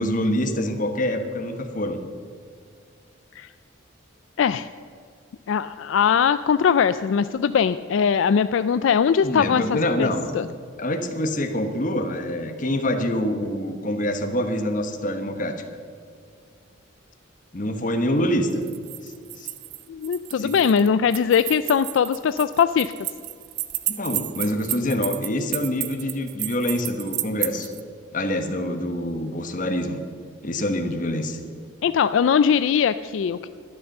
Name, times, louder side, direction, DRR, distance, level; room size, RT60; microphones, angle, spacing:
voice 1, 0.0-2.0 9.2-10.3 10.8-15.6 17.5-18.6 19.0-19.5 20.4-20.5 23.9-27.7 28.1-30.0 30.4-31.4, left 1 dB, 40° left, 6 dB, 1.2 m, -26 dB
voice 2, 4.4-4.7 5.5-9.6 10.0-10.1 10.3-10.5 19.9-22.9 31.8-33.5, left 7 dB, 70° left, 12 dB, 0.3 m, -20 dB
sound 1, 18.5-27.8, right 15 dB, 55° right, 0.6 m, -32 dB
12.0 x 10.5 x 6.6 m, 2.2 s
head